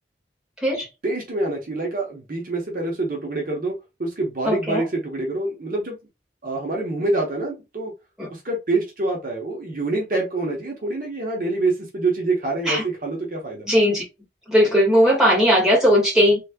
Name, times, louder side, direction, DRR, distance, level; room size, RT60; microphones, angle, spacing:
voice 1, 1.0-3.7 4.0-6.0 6.4-7.9 8.3-13.7, right 2 dB, 50° right, 0.8 m, -26 dB
voice 2, 4.4-4.8 8.2-8.3 12.6-12.8 13.6-14.0 14.5-16.4, equal, 5° right, 1.7 m, -18 dB
3.3 x 3.1 x 2.2 m
head